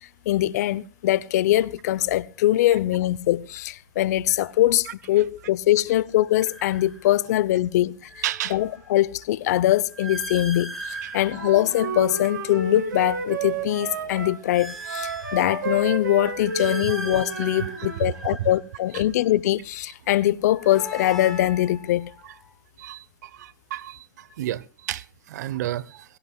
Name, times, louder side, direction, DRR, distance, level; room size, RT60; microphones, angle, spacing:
voice 1, 0.3-8.0 8.5-22.1, left 14 dB, 55° left, 0.7 m, -22 dB
sound 1, 4.3-4.5 6.2-7.4 7.8-12.7 13.2-15.8 16.3-19.2 20.2-22.5, right 1 dB, ahead, 3.9 m, -40 dB
voice 2, 8.2-8.5 11.0-11.2 22.8-24.0 24.4-26.0, right 13 dB, 60° right, 0.9 m, -32 dB
Wind instrument woodwind instrument, 11.3-14.4 14.8-18.1, right 5 dB, 80° right, 5.5 m, -31 dB
20.5 x 17.0 x 2.3 m
hypercardioid pair, 125°, 10 cm